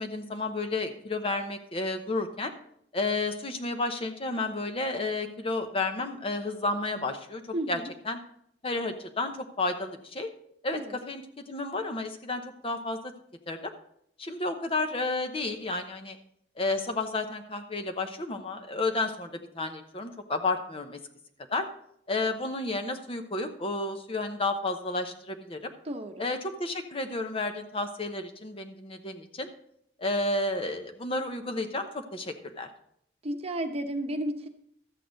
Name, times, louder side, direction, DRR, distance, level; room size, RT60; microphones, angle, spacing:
voice 1, 0.0-2.5 2.9-7.4 7.7-7.8 8.1-8.2 8.6-10.3 10.6-11.2 11.5-13.1 13.5-13.7 14.2-16.2 16.6-21.0 21.5-21.7 22.1-25.7 26.2-29.5 30.0-32.7, left 2 dB, 30° left, 6 dB, 0.9 m, -31 dB
voice 2, 7.5-7.9 10.7-11.0 25.8-26.3 33.2-34.5, right 1 dB, 35° right, 5 dB, 0.9 m, -33 dB
12.5 x 8.4 x 4.0 m, 0.70 s
head